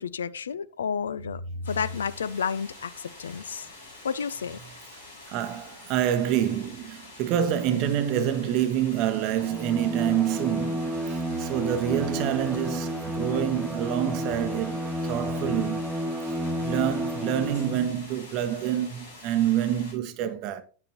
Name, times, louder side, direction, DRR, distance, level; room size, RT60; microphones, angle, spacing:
voice 1, 0.0-1.4 1.7-3.7 4.0-4.6, left 6 dB, 70° left, 0.4 m, -31 dB
sound 1, 1.6-19.9, left 2 dB, 85° left, 5.1 m, -47 dB
voice 2, 5.3-15.8 16.2-20.6, right 10 dB, 40° right, 0.8 m, -27 dB
Bowed string instrument, 9.4-17.9, equal, 5° right, 0.9 m, -31 dB
9.3 x 7.7 x 2.9 m
figure-of-eight pair, 90°, 0 cm